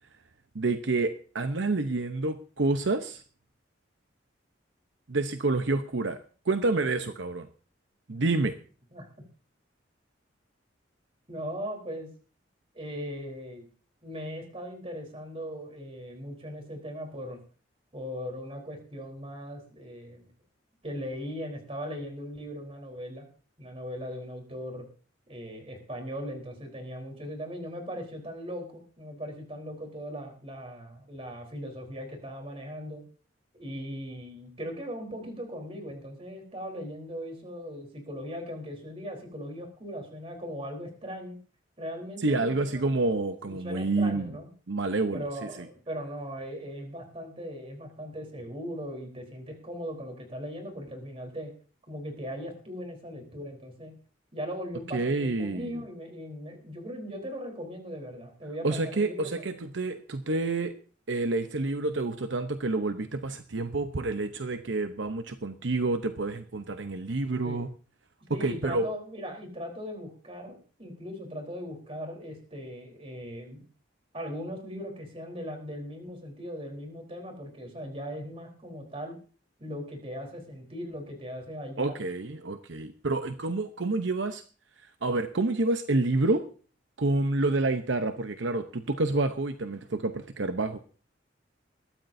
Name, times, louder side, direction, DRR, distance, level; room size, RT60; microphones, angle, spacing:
voice 1, 0.5-3.2 5.1-6.2 6.5-7.5 8.1-8.6 42.2-44.4 44.7-45.7 54.9-55.8 58.6-60.7 61.1-67.7 68.3-68.9 81.8-84.4 85.0-86.4 87.0-90.8, right 2 dB, 75° right, 8 dB, 0.8 m, -28 dB
voice 2, 11.3-12.1 12.7-13.7 14.0-17.4 17.9-20.2 20.8-23.3 23.6-24.9 25.3-33.0 33.5-41.4 41.8-42.9 43.5-44.5 45.1-51.5 51.9-54.0 54.3-59.5 67.4-67.7 68.3-73.6 74.1-79.2 79.6-82.0, equal, 30° right, 3 dB, 3.8 m, -39 dB
21.5 x 13.5 x 2.7 m, 0.39 s
head